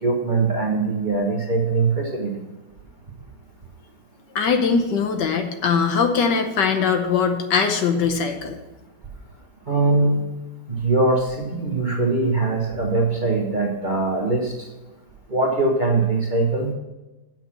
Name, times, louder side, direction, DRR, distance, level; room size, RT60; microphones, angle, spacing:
voice 1, 0.0-2.5 9.7-10.2 10.7-14.7 15.3-16.7, right 3 dB, 30° right, -1 dB, 1.0 m, -22 dB
voice 2, 4.3-8.6, left 5 dB, 65° left, 6 dB, 1.5 m, -21 dB
8.1 x 6.0 x 7.4 m, 1.1 s
omnidirectional pair, 2.1 m